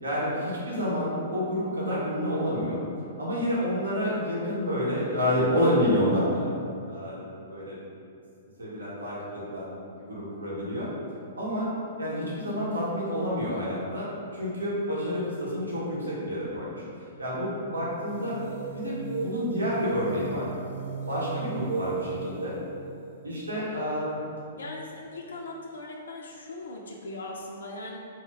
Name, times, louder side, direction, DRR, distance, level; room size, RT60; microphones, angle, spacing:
voice 1, 0.0-2.8 3.2-6.5 6.9-7.8 8.6-9.7 10.0-10.9 11.4-11.7 12.0-16.8 17.2-18.4 18.7-20.5 21.1-22.6 23.2-24.3, equal, 80° right, -7 dB, 0.8 m, -29 dB
sound 1, 18.1-24.5, right 4 dB, 55° right, 0.3 m, -36 dB
voice 2, 23.5-23.9 24.6-28.0, left 2 dB, 70° left, -1 dB, 0.3 m, -40 dB
3.0 x 2.1 x 3.4 m, 2.5 s
figure-of-eight pair, 110°, 0 cm